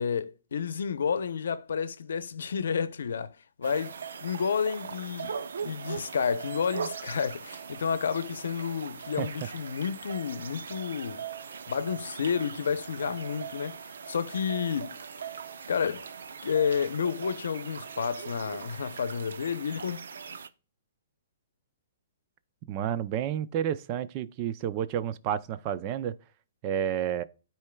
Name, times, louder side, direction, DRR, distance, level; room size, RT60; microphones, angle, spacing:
voice 1, 0.0-11.2 11.7-15.0 15.7-16.0 16.4-20.0, left 6 dB, 80° left, 0.7 m, -31 dB
sound 1, 3.6-20.5, right 6 dB, 80° right, 0.7 m, -40 dB
voice 2, 22.7-26.2 26.6-27.2, right 10 dB, 25° right, 0.4 m, -30 dB
13.0 x 4.5 x 2.3 m
hypercardioid pair, 175°, 0 cm